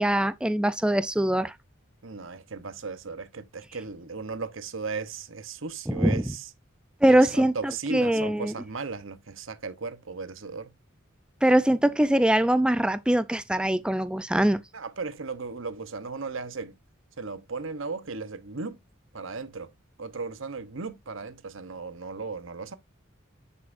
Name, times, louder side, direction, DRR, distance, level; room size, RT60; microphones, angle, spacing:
voice 1, 0.0-1.5 5.9-6.2 7.0-8.5 11.4-14.6, right 1 dB, 5° right, 0.4 m, -22 dB
voice 2, 2.0-6.5 7.1-10.7 14.7-16.7 17.2-18.8 19.1-19.7 20.0-22.7, right 4 dB, 65° right, 0.9 m, -36 dB
9.8 x 5.5 x 2.6 m
head